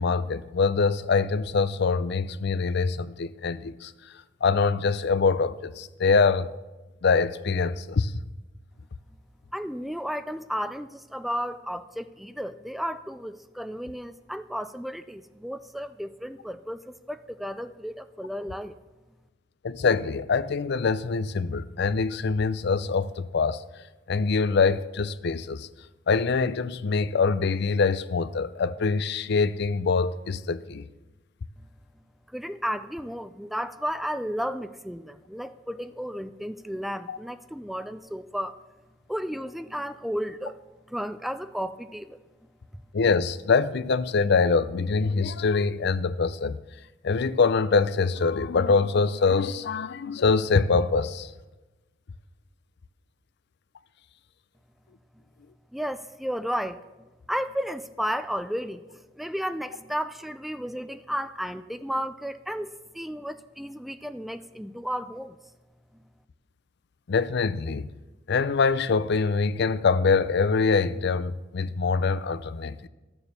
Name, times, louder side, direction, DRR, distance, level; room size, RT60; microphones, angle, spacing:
voice 1, 0.0-3.9 4.4-6.5 7.0-8.1 19.6-23.6 24.1-25.7 26.1-30.9 37.1-37.2 42.9-46.6 47.0-51.3 67.1-67.9 68.3-72.9, left 4 dB, 60° left, 0.5 m, -24 dB
voice 2, 9.5-18.7 32.3-38.6 39.1-40.6 40.9-42.2 55.7-65.4, equal, ahead, 0.3 m, -33 dB
13.0 x 7.0 x 6.7 m
head